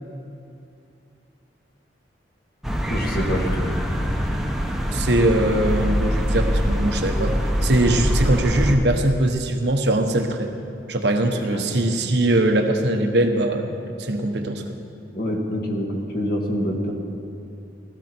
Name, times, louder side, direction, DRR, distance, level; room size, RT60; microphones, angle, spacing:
sound 1, 2.6-8.8, equal, ahead, 1.0 m, -23 dB
voice 1, 2.9-3.7 11.5-11.7 15.1-16.9, equal, 55° left, 0 dB, 1.9 m, -26 dB
voice 2, 4.9-10.5 10.9-13.7 14.0-14.8, right 1 dB, 70° right, 5 dB, 1.2 m, -21 dB
16.5 x 14.0 x 4.5 m, 2.5 s
head